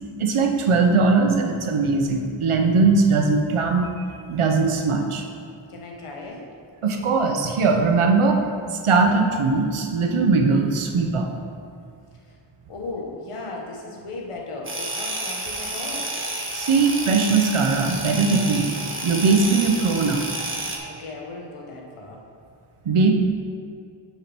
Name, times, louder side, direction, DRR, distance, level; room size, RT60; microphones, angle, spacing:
voice 1, 0.2-5.2 6.8-8.4 8.8-11.3 16.5-18.7 19.0-20.3 22.8-23.1, right 4 dB, 80° right, 3 dB, 1.0 m, -20 dB
voice 2, 5.7-6.4 12.2-12.4 12.7-16.1 20.9-22.2, left 3 dB, 85° left, -1 dB, 1.4 m, -36 dB
sound 1, 14.6-20.8, right 1 dB, 25° right, 1.4 m, -30 dB
6.8 x 4.8 x 6.1 m, 2.4 s
cardioid pair, 60°, 50 cm